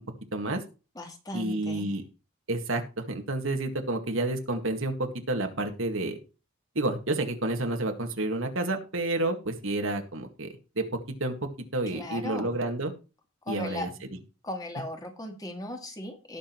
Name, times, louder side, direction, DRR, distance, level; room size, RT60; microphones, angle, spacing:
voice 1, 0.3-0.6 1.3-2.0 2.5-6.2 6.8-12.9 13.5-13.9, right 2 dB, 65° right, 5 dB, 2.0 m, -30 dB
voice 2, 1.0-1.9 11.9-12.6 13.4-14.1 14.4-16.4, left 1 dB, 15° left, 3 dB, 2.1 m, -37 dB
18.0 x 6.4 x 3.1 m, 0.32 s
head